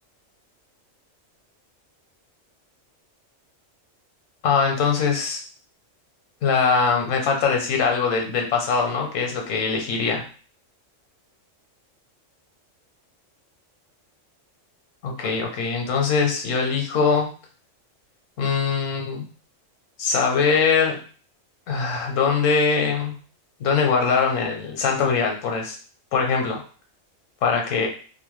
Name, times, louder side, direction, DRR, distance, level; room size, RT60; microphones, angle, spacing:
voice 1, 4.4-5.4 6.4-10.2 15.0-17.3 18.4-19.2 20.0-21.0 21.7-23.2 23.6-25.8 26.1-26.6 27.4-27.9, left 5 dB, 75° left, 2 dB, 1.1 m, -22 dB
2.5 x 2.1 x 3.0 m, 0.40 s
omnidirectional pair, 1.3 m